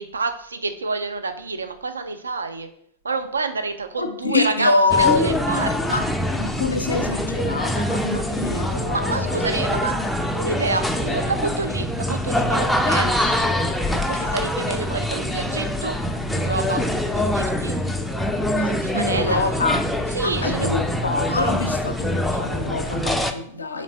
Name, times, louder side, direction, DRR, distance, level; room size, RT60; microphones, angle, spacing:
voice 1, 0.0-2.7 3.0-6.1 8.9-13.5 13.9-16.0 16.3-16.8 17.1-17.8 18.6-19.4 20.1-20.7, right 4 dB, 75° right, 0.3 m, -28 dB
voice 2, 4.0-5.3 5.9-6.0 6.3-9.4 18.9-19.8 20.2-23.8, left 3 dB, 75° left, 0.4 m, -24 dB
sound 1, 4.9-23.3, left 1 dB, 5° left, 0.3 m, -24 dB
3.2 x 3.1 x 3.9 m
figure-of-eight pair, 90°, 0 cm